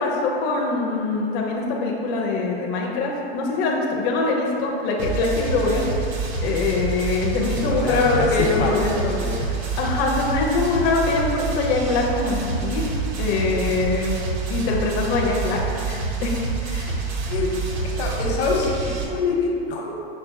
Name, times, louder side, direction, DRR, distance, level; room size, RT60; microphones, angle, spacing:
voice 1, 0.0-5.9 6.4-9.2 9.8-12.8 13.2-14.2 14.5-15.6 15.9-16.3 16.7-16.9, left 3 dB, 35° left, -1 dB, 0.4 m, -23 dB
sound 1, 5.0-19.0, right 4 dB, 35° right, 0.5 m, -27 dB
voice 2, 7.5-9.5 17.3-17.5 18.0-19.9, left 4 dB, 80° left, -1 dB, 0.8 m, -25 dB
5.7 x 2.2 x 2.5 m, 2.6 s
supercardioid pair, 135°, 32 cm